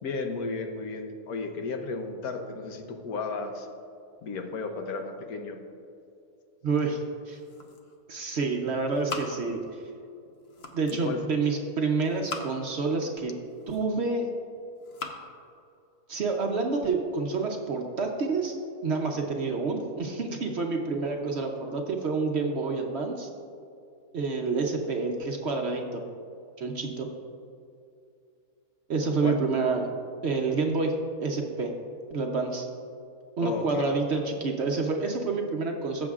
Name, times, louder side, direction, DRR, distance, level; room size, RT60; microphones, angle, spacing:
voice 1, 0.0-3.7 4.2-5.6 10.9-11.2 29.2-29.4 33.4-33.9, left 4 dB, 75° left, 5 dB, 1.3 m, -34 dB
voice 2, 6.6-7.4 8.1-9.6 10.7-13.3 13.7-14.3 16.1-18.5 18.8-23.3 24.1-26.0 26.6-27.1 28.9-29.9 30.2-31.7 32.1-32.7 33.4-36.1, right 4 dB, 55° right, 2 dB, 0.9 m, -28 dB
sound 1, 7.1-8.1 8.4-9.9 10.3-11.1 11.9-12.8 13.4-14.2 14.7-15.2, left 3 dB, 50° left, 1.0 m, -41 dB
15.0 x 7.0 x 2.4 m, 2.5 s
omnidirectional pair, 1.6 m